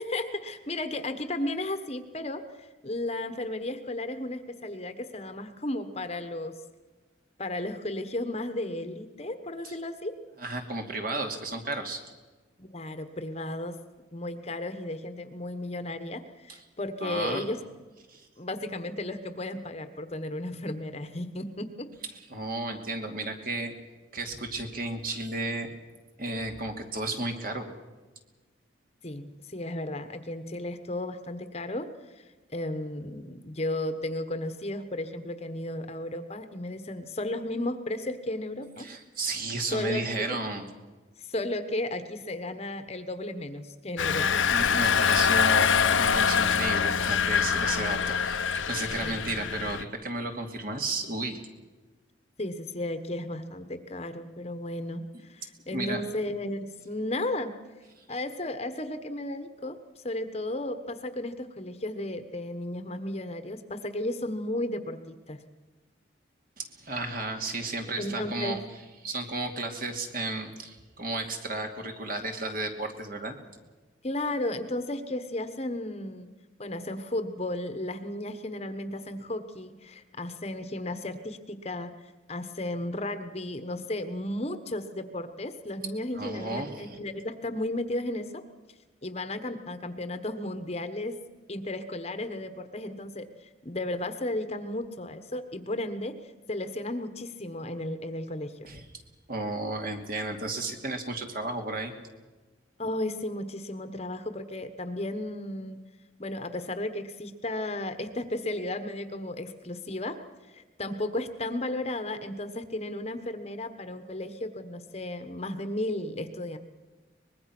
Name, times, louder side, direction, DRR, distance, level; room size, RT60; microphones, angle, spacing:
voice 1, 0.0-6.6 7.4-10.2 12.6-13.7 14.1-17.6 18.4-21.9 29.0-31.9 32.2-32.3 32.5-38.9 39.7-40.0 40.3-40.4 41.2-44.7 49.0-49.2 52.4-57.5 58.1-65.4 68.0-68.6 74.0-76.3 76.6-81.9 82.3-88.4 89.0-91.2 91.5-96.1 96.5-98.7 102.8-105.8 106.2-110.2 110.5-116.6, left 1 dB, 30° left, 10 dB, 1.2 m, -34 dB
voice 2, 10.4-12.0 16.5-16.6 17.0-17.4 18.1-18.2 22.3-23.7 24.1-25.7 26.2-27.8 38.8-40.7 44.5-51.4 55.1-55.2 55.7-56.1 66.6-68.7 69.0-73.3 86.2-87.0 98.6-98.9 99.3-101.9, right 2 dB, 45° right, 4 dB, 2.6 m, -33 dB
Engine, 44.0-49.8, left 6 dB, 75° left, 0.9 m, -24 dB
24.0 x 21.0 x 6.1 m, 1.3 s
head